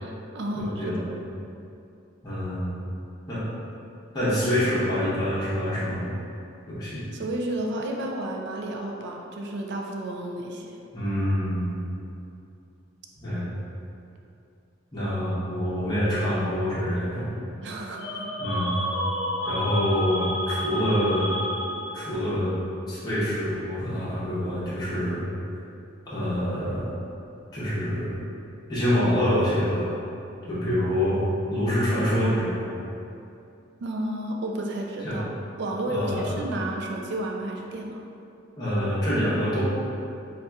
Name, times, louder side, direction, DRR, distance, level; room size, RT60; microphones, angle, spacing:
voice 1, 0.0-1.0 7.1-10.7 17.6-18.3 33.8-35.3 35.6-38.0, right 1 dB, 60° right, 1 dB, 0.4 m, -31 dB
voice 2, 0.5-1.1 2.2-2.8 3.3-3.4 4.1-6.1 6.7-7.0 10.9-11.8 13.2-13.5 14.9-17.3 18.4-18.8 19.4-21.4 21.9-22.6 22.9-25.2 26.1-26.9 27.5-28.1 28.7-29.9 30.5-31.2 31.5-32.8 35.0-35.2 35.9-36.3 38.6-39.6, equal, 20° left, -12 dB, 0.7 m, -26 dB
sound 1, 18.0-22.1, equal, 65° left, 0.5 m, -30 dB
4.1 x 2.4 x 2.3 m, 2.6 s
head